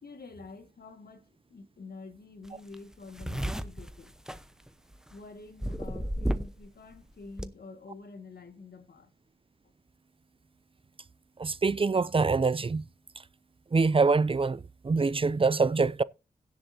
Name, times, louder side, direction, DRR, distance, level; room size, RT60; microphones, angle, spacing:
voice 1, 0.0-4.1 5.1-9.1, left 3 dB, 80° left, 1.9 m, -47 dB
sound 1, 2.5-2.6 2.7-5.1 5.6-6.7 6.9-7.5, equal, 5° right, 0.9 m, -32 dB
voice 2, 11.4-12.8 13.7-16.0, right 4 dB, 35° right, 0.5 m, -25 dB
17.0 x 7.8 x 2.7 m
wide cardioid pair, 70°, 16 cm